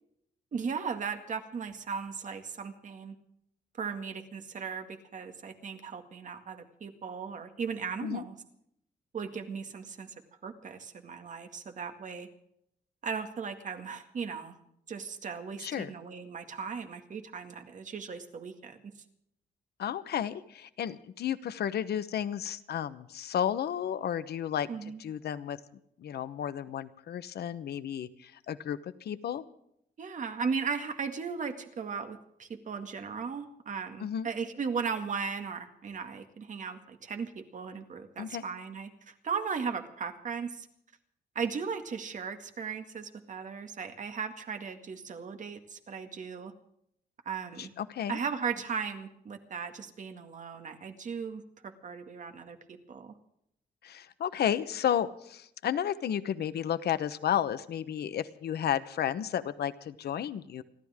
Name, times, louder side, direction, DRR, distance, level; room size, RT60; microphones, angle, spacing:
voice 1, 0.5-3.2 3.8-8.4 9.1-10.1 10.4-12.3 13.0-14.6 14.9-18.9 24.7-25.0 30.0-40.7 41.4-46.5 47.3-47.7 48.1-53.1, right 6 dB, 45° right, 6 dB, 2.0 m, -37 dB
voice 2, 15.6-15.9 19.8-24.7 25.0-25.6 26.0-29.4 34.0-34.3 38.2-38.4 47.6-48.2 53.8-60.6, left 9 dB, 70° left, 13 dB, 1.0 m, -32 dB
29.5 x 12.5 x 3.6 m, 0.75 s
wide cardioid pair, 150°, 17 cm